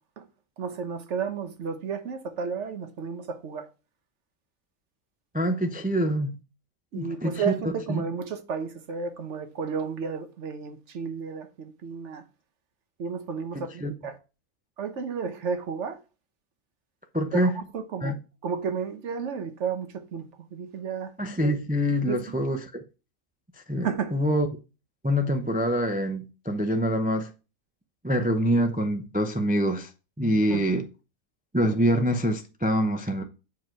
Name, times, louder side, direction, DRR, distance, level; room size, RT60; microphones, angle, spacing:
voice 1, 0.6-3.7 6.9-12.2 13.0-14.2 14.8-16.0 17.3-18.2 18.4-21.1 22.1-22.4 23.8-24.2 30.5-30.6, right 6 dB, 60° right, 1.2 m, -32 dB
voice 2, 5.3-6.4 6.9-8.0 13.5-13.9 17.1-17.5 18.0-18.2 21.2-22.8 23.7-24.5 25.0-27.3 28.0-29.9 30.2-30.8 31.5-33.2, equal, 10° right, 0.4 m, -25 dB
7.3 x 4.7 x 4.6 m
omnidirectional pair, 1.5 m